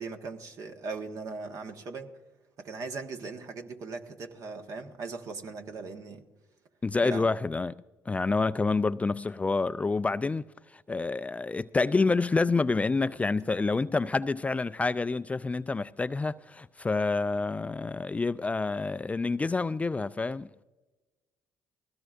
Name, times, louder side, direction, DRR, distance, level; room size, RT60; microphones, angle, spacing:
voice 1, 0.0-2.1 2.6-6.2 7.0-7.3, right 4 dB, 55° right, 1.4 m, -39 dB
voice 2, 6.8-10.4 10.7-20.5, left 3 dB, 20° left, 0.3 m, -28 dB
20.0 x 16.5 x 2.5 m
hypercardioid pair, 60°, 7 cm